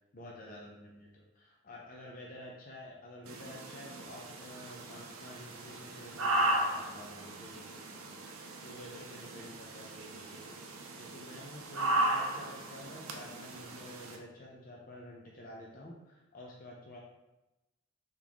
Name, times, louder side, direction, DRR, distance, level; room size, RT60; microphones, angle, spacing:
voice 1, 0.1-17.0, left 1 dB, 40° left, -3 dB, 0.5 m, -50 dB
sound 1, 3.3-14.2, right 1 dB, 80° right, 0.6 m, -36 dB
4.0 x 3.6 x 2.9 m, 1.0 s
head